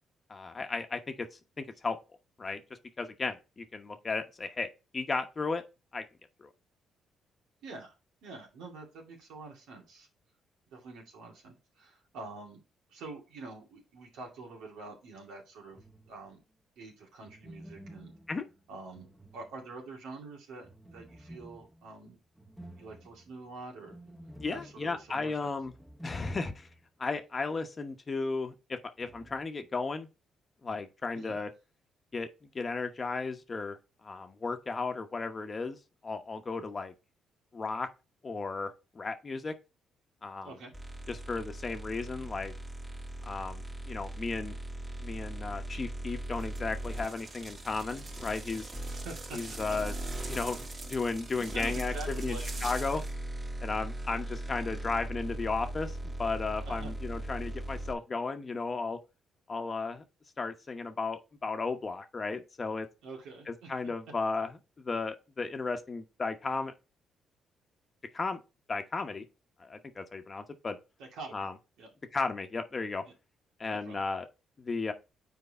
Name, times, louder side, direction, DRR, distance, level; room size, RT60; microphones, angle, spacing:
voice 1, 0.3-1.3 1.6-2.0 2.4-2.6 3.0-4.7 4.9-5.6 5.9-6.0 6.4-6.5 18.3-18.4 24.4-25.7 26.0-26.7 27.0-30.1 30.6-31.5 32.1-35.8 36.0-36.9 37.5-37.9 38.2-39.5 40.2-40.5 41.1-42.5 43.3-44.5 45.0-48.7 49.3-49.9 50.3-53.0 53.6-59.0 59.5-60.0 60.4-62.9 63.5-66.7 68.1-68.4 68.7-69.2 69.6-70.8 71.3-71.5 72.1-73.0 73.6-74.3 74.6-74.9, left 4 dB, 35° left, 1.0 m, -34 dB
voice 2, 7.6-7.9 8.2-10.1 10.7-12.6 12.9-15.8 16.1-16.4 16.8-18.1 18.7-19.1 19.3-22.2 22.8-24.0 24.5-25.5 31.1-31.4 40.4-40.7 48.8-49.4 49.7-49.8 51.3-53.0 56.6-56.9 63.0-63.7 71.0-71.5 71.8-71.9 73.7-74.0, right 3 dB, 85° right, 2.4 m, -46 dB
sound 1, 15.7-16.4 17.2-20.0 20.6-26.9 27.1-27.2 29.0-29.4, equal, 5° right, 1.0 m, -52 dB
sound 2, 40.7-57.9, right 1 dB, 20° right, 2.0 m, -39 dB
sound 3, 46.3-53.1, right 3 dB, 50° right, 2.0 m, -46 dB
6.9 x 4.6 x 4.2 m
cardioid pair, 90°, 0 cm